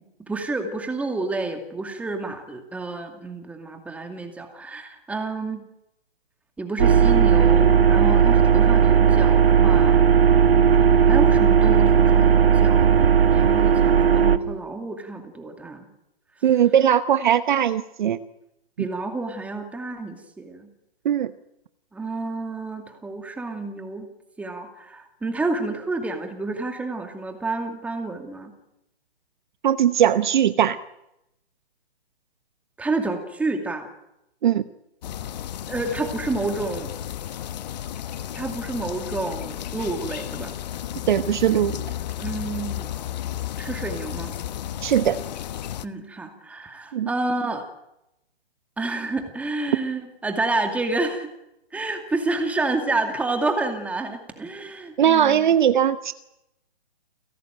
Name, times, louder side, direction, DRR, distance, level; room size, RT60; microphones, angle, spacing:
voice 1, 0.3-5.6 6.6-10.1 10.7-15.9 18.8-20.7 21.9-24.1 24.4-28.5 32.8-33.9 35.7-36.9 38.3-40.5 42.2-42.9 43.6-44.4 45.8-47.7 48.8-51.3 51.7-55.5, right 3 dB, 5° right, 5 dB, 2.4 m, -29 dB
sound 1, 6.8-14.4, right 7 dB, 65° right, 1.7 m, -16 dB
voice 2, 16.4-18.2 21.0-21.3 29.6-30.8 34.4-34.7 41.1-41.8 44.8-45.2 46.9-47.1 55.0-56.1, right 9 dB, 50° right, 13 dB, 1.0 m, -19 dB
sound 2, 35.0-45.9, left 11 dB, 40° left, 1.1 m, -33 dB
29.5 x 17.5 x 9.0 m, 0.86 s
hypercardioid pair, 150°, 31 cm